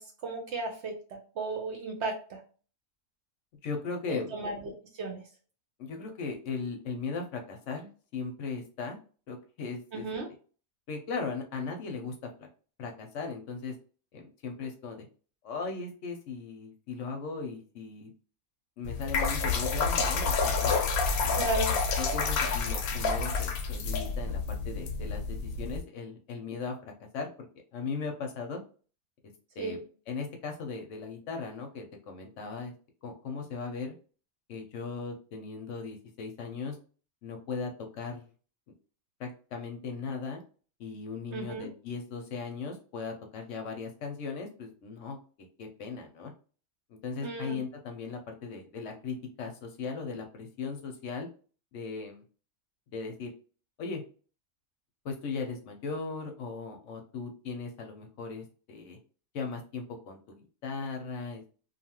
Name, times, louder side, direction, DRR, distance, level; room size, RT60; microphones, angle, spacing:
voice 1, 0.0-2.4 4.1-5.2 9.9-10.3 21.3-21.7 29.6-29.8 41.3-41.7 47.2-47.6, right 2 dB, 60° right, 2 dB, 0.8 m, -35 dB
voice 2, 3.6-4.4 5.8-9.0 9.3-10.1 10.9-12.5 12.8-13.7 14.1-15.1 15.4-18.1 18.8-20.7 21.2-21.5 22.0-27.5 27.7-28.6 29.6-29.8 30.1-32.7 33.0-33.9 34.5-36.8 37.2-38.3 39.2-40.4 40.8-45.2 45.6-46.3 46.9-51.3 51.7-52.2 52.9-53.3 53.8-54.0 55.0-59.0 59.3-61.4, left 4 dB, 65° left, 3 dB, 0.9 m, -38 dB
sound 1, 18.8-25.8, left 4 dB, 90° left, 1.1 m, -29 dB
2.7 x 2.3 x 2.8 m, 0.39 s
omnidirectional pair, 1.5 m